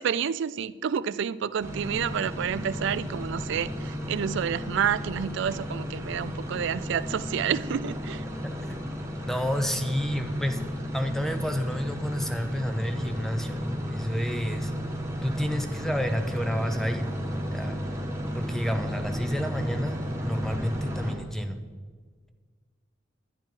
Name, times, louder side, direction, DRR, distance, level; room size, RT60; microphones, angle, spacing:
voice 1, 0.0-8.2, right 8 dB, 65° right, 0.4 m, -29 dB
sound 1, 1.6-21.2, equal, 15° right, 1.6 m, -33 dB
voice 2, 9.3-10.6 10.9-14.7 15.2-17.1 17.5-17.9 18.3-20.0 20.2-21.6, equal, ahead, 0.7 m, -30 dB
10.5 x 10.5 x 4.5 m
head